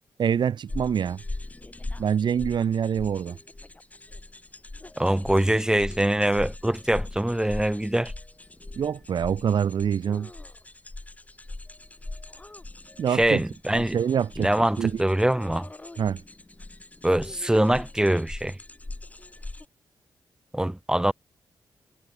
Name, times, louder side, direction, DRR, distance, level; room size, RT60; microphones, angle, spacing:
voice 1, 0.2-1.2 2.0-3.4 8.8-10.3 13.0-13.4 13.7-15.0 16.0-16.2, right 8 dB, 70° right, 1.4 m, -25 dB
sound 1, 0.7-19.7, left 2 dB, 20° left, 6.3 m, -40 dB
voice 2, 5.0-8.1 13.1-14.0 14.4-15.7 17.0-18.6 20.5-21.1, right 1 dB, 10° right, 2.4 m, -23 dB
wide cardioid pair, 115°, 8 cm